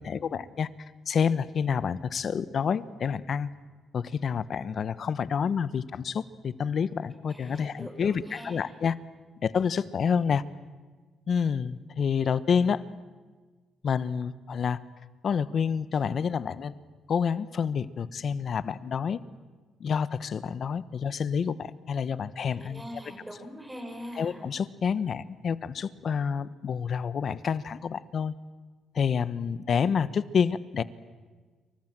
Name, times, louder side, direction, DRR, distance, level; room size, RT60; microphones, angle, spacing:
voice 1, 0.0-3.5 3.9-9.0 9.4-10.4 11.3-12.8 13.8-14.8 15.2-16.7 17.1-19.2 19.8-22.8 24.2-28.3 28.9-30.8, left 6 dB, 55° left, 16 dB, 1.1 m, -28 dB
voice 2, 7.3-8.6 22.4-24.4, equal, 10° right, 4 dB, 6.2 m, -42 dB
28.0 x 24.5 x 7.6 m, 1.4 s
cardioid pair, 80°, 0 cm